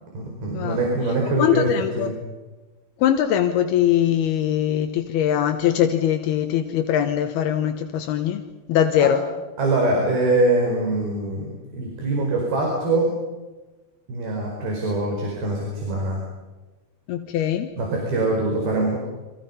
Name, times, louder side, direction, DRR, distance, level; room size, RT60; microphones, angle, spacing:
voice 1, 0.1-1.7 2.0-2.2 9.0-9.1 9.6-13.1 14.1-16.2 17.8-19.0, right 2 dB, 75° right, 0 dB, 6.9 m, -23 dB
voice 2, 1.4-2.1 3.0-8.4 8.7-9.2 17.1-17.7, left 10 dB, 80° left, 6 dB, 3.1 m, -21 dB
29.0 x 26.0 x 5.6 m, 1.2 s
omnidirectional pair, 4.4 m